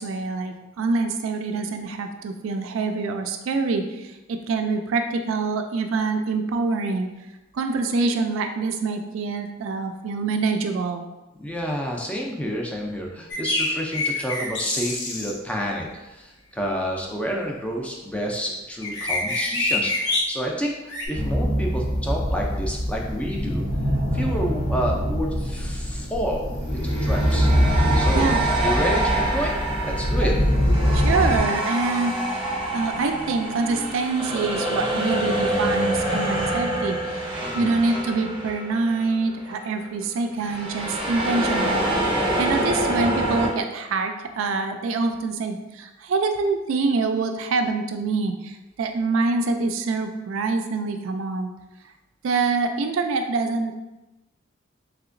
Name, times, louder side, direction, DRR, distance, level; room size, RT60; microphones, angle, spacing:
voice 1, 0.0-7.2 7.5-11.0 28.1-28.5 30.2-30.3 30.9-32.2 32.7-51.5 52.2-53.7, right 3 dB, 80° right, 6 dB, 0.3 m, -25 dB
voice 2, 11.4-23.7 24.1-26.4 26.7-27.5 28.0-28.3 28.6-30.4 37.4-37.8, equal, 5° left, -1 dB, 0.4 m, -29 dB
sound 1, 13.3-15.3 18.8-20.2 20.9-21.1, left 2 dB, 60° left, 0.7 m, -25 dB
sound 2, 21.1-31.4, equal, 85° left, 1.0 m, -23 dB
sound 3, 24.1-24.3 26.8-39.2 39.4-39.6 40.4-43.5, right 1 dB, 25° right, 0.7 m, -26 dB
3.3 x 2.8 x 2.5 m, 1.0 s
head